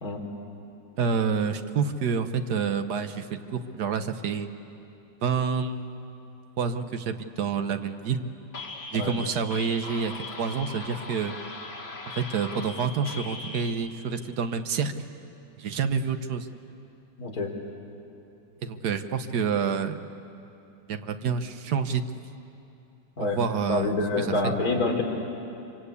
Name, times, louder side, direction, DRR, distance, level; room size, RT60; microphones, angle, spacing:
voice 1, 1.0-4.5 5.2-6.0 6.6-8.3 8.9-11.4 12.2-14.9 15.6-16.5 18.6-20.0 20.9-22.0 23.2-24.5, right 6 dB, 60° right, 9 dB, 1.4 m, -28 dB
sound 1, 8.5-13.7, left 3 dB, 90° left, 2.9 m, -39 dB
voice 2, 17.2-17.5 23.2-23.4 23.7-25.0, left 2 dB, 50° left, 0 dB, 3.7 m, -26 dB
25.5 x 25.5 x 8.4 m, 2.8 s
omnidirectional pair, 2.1 m